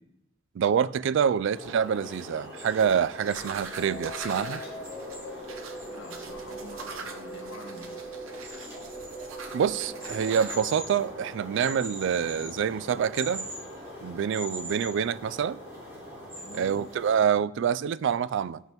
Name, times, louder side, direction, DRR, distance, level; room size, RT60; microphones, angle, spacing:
voice 1, 0.6-4.6 9.5-13.5 14.0-15.6 16.5-18.6, right 7 dB, 65° right, 0.3 m, -26 dB
sound 1, 1.5-17.3, equal, 15° right, 3.3 m, -41 dB
sound 2, 2.8-10.6, right 4 dB, 85° right, 1.0 m, -43 dB
sound 3, 3.5-11.5, equal, 20° left, 2.9 m, -43 dB
voice 2, 5.9-8.0 16.4-16.8, left 1 dB, 80° left, 1.4 m, -46 dB
13.5 x 5.4 x 3.0 m
head